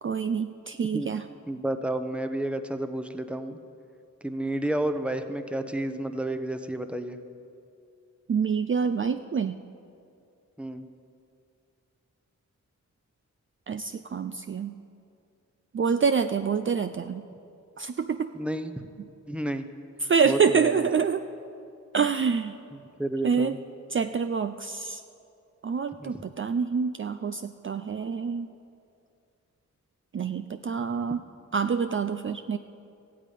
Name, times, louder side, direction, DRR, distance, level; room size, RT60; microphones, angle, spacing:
voice 1, 0.0-1.3 8.3-9.6 13.7-14.7 15.7-17.2 17.8-18.3 20.0-21.3 21.9-22.5 23.2-23.6 23.9-25.0 25.6-28.5 30.1-31.2 31.5-32.6, right 6 dB, 40° right, 9 dB, 0.4 m, -26 dB
voice 2, 1.5-3.6 4.2-7.2 10.6-10.9 18.3-18.9 19.3-19.7 20.2-20.9 23.0-23.6 26.0-26.1, right 1 dB, 5° right, 9 dB, 0.8 m, -31 dB
14.5 x 8.5 x 9.3 m, 2.5 s
wide cardioid pair, 85°, 30 cm